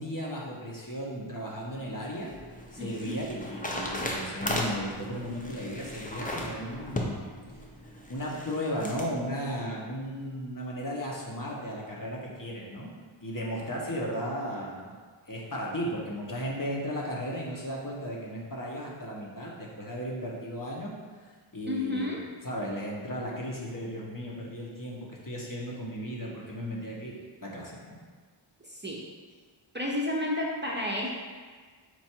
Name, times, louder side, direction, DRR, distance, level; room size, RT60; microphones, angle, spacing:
voice 1, 0.0-2.3 2.7-7.3 8.1-13.0 13.2-14.9 15.3-20.9 21.2-22.2 22.4-27.1 27.4-27.9, equal, 40° left, -3 dB, 0.9 m, -35 dB
sound 1, 1.8-9.1, left 1 dB, 15° left, 0.6 m, -36 dB
voice 2, 2.8-3.2 21.7-22.2 28.6-29.0 29.7-31.1, left 1 dB, 20° right, -4 dB, 0.6 m, -31 dB
4.6 x 2.5 x 4.3 m, 1.6 s
wide cardioid pair, 40°, 50 cm